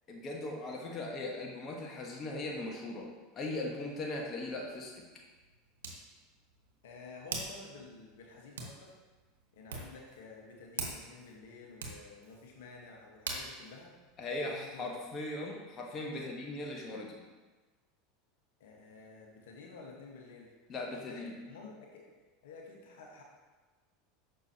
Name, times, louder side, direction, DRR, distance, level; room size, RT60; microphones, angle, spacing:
voice 1, 0.1-5.0 14.2-17.2 20.7-21.3, left 2 dB, 35° left, 0 dB, 1.2 m, -39 dB
Hands, 4.2-15.0, right 4 dB, 85° right, 1.1 m, -46 dB
voice 2, 6.8-8.9 9.5-13.9 14.4-14.9 16.0-16.5 18.6-20.5 21.1-22.0 22.4-23.2, left 4 dB, 75° left, -1 dB, 1.2 m, -51 dB
6.4 x 6.0 x 2.9 m, 1.3 s
hypercardioid pair, 95°, 0 cm